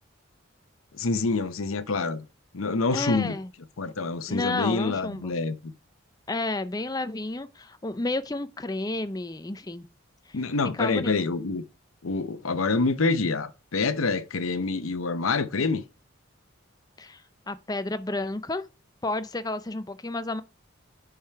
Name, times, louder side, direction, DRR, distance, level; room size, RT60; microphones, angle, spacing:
voice 1, 0.9-2.2 2.5-3.3 3.8-5.5 10.3-11.6 12.0-15.8, left 3 dB, 85° left, 0.8 m, -26 dB
voice 2, 2.9-3.5 4.3-5.3 6.3-9.9 10.3-10.4 10.7-11.1 17.0-17.2 17.5-18.6 19.0-20.4, left 2 dB, 20° left, 0.5 m, -31 dB
9.0 x 4.8 x 5.7 m
head